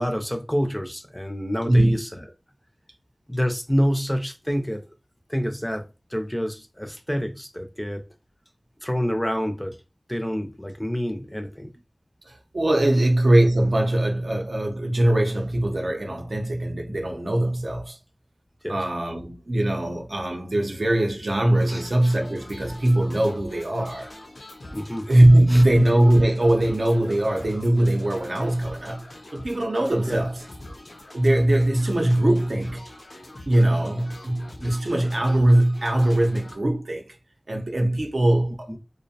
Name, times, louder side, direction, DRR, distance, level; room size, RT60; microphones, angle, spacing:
voice 1, 0.0-2.2 3.3-4.8 5.3-5.8 6.1-8.0 8.8-9.8 10.1-11.7 18.6-18.8 21.7-21.8 24.7-25.1 25.5-25.6 30.1-30.2 38.7-38.8, equal, 10° left, 0.4 m, -27 dB
voice 2, 12.3-18.0 18.7-24.1 25.1-30.4 31.1-32.8 33.5-37.0 37.5-38.7, right 1 dB, 75° right, 0.6 m, -21 dB
sound 1, 21.5-36.5, left 1 dB, 85° left, 0.6 m, -44 dB
2.5 x 2.1 x 2.7 m
wide cardioid pair, 45°, 0 cm